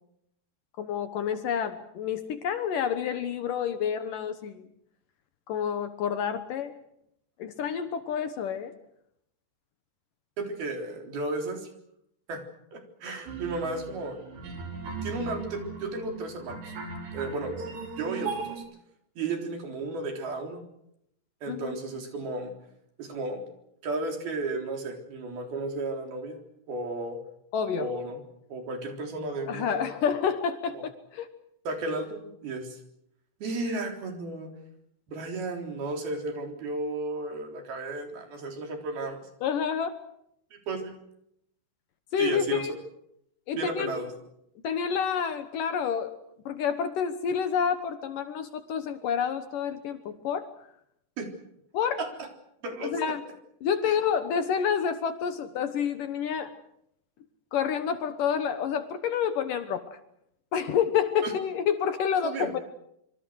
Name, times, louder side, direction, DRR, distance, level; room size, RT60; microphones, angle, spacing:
voice 1, 0.8-4.7 5.5-6.8 7.4-8.7 21.5-21.8 27.5-27.9 29.5-31.3 39.4-39.9 42.1-42.7 43.5-44.0 44.6-46.2 46.5-50.5 51.7-52.0 52.8-53.2 53.6-56.5 57.5-60.0 60.5-62.6, left 7 dB, 65° left, 10 dB, 2.5 m, -29 dB
voice 2, 10.4-11.7 12.3-14.2 15.0-16.7 17.1-17.6 18.0-18.6 19.2-20.6 21.4-22.5 23.0-23.5 23.8-26.4 26.7-27.2 27.8-28.2 28.5-29.8 30.7-30.8 31.7-32.8 33.4-34.5 35.1-39.2 40.5-41.0 42.2-42.7 43.6-44.1 51.2-51.3 52.0-52.3 52.6-53.1 53.8-54.0 61.2-61.3 62.2-62.5, right 2 dB, 65° right, 4 dB, 5.6 m, -34 dB
sound 1, 13.3-18.6, right 4 dB, 80° right, 6.6 m, -38 dB
26.5 x 25.0 x 6.4 m, 0.76 s
omnidirectional pair, 4.7 m